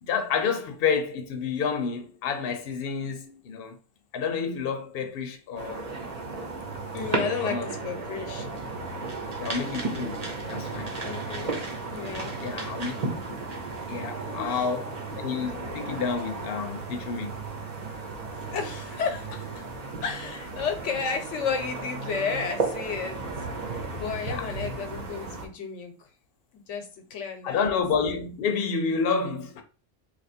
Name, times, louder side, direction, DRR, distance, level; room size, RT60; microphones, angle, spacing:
voice 1, 0.0-3.8 4.1-5.9 7.4-7.7 9.4-11.0 11.4-11.6 12.4-13.4 13.9-17.4 24.3-24.5 27.4-29.6, left 5 dB, 60° left, 0.8 m, -29 dB
sound 1, 5.6-25.5, right 3 dB, 40° right, 0.8 m, -35 dB
sound 2, 6.6-19.6, right 6 dB, 75° right, 0.9 m, -43 dB
voice 2, 6.9-8.5 10.9-12.3 14.3-14.7 15.5-15.8 16.5-16.7 18.0-19.6 20.0-23.2 23.7-26.1 26.5-27.7, left 6 dB, 90° left, 1.1 m, -33 dB
3.0 x 2.4 x 4.2 m
omnidirectional pair, 1.2 m